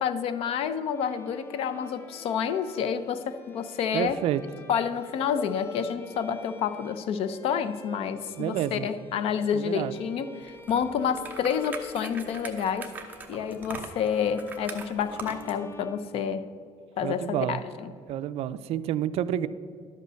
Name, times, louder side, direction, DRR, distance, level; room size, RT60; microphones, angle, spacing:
voice 1, 0.0-4.2 4.7-12.9 13.3-16.4 17.0-17.9, left 7 dB, 60° left, 12 dB, 0.6 m, -29 dB
Bowed string instrument, 0.9-16.8, left 2 dB, 20° left, 1.0 m, -48 dB
voice 2, 3.9-4.4 8.4-8.9 9.5-9.9 17.0-17.6 18.1-19.5, right 11 dB, 60° right, 13 dB, 0.4 m, -29 dB
sound 1, 10.5-15.6, right 4 dB, 15° right, 0.8 m, -41 dB
11.5 x 5.5 x 6.3 m, 2.2 s
cardioid pair, 150°, 11 cm